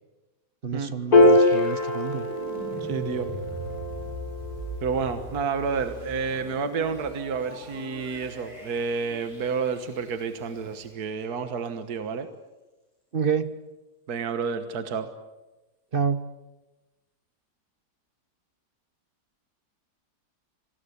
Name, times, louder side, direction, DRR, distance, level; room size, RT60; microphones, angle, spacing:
voice 1, 0.6-2.3 13.1-13.5 15.9-16.3, right 6 dB, 35° right, 12 dB, 1.3 m, -28 dB
Piano, 1.1-7.7, left 1 dB, 65° left, 6.7 m, -25 dB
sound 1, 1.2-11.0, equal, 20° right, 8.1 m, -40 dB
voice 2, 2.8-3.3 4.8-12.3 14.1-15.1, right 5 dB, 65° right, 9 dB, 1.9 m, -30 dB
27.0 x 20.0 x 8.4 m, 1.1 s
omnidirectional pair, 1.8 m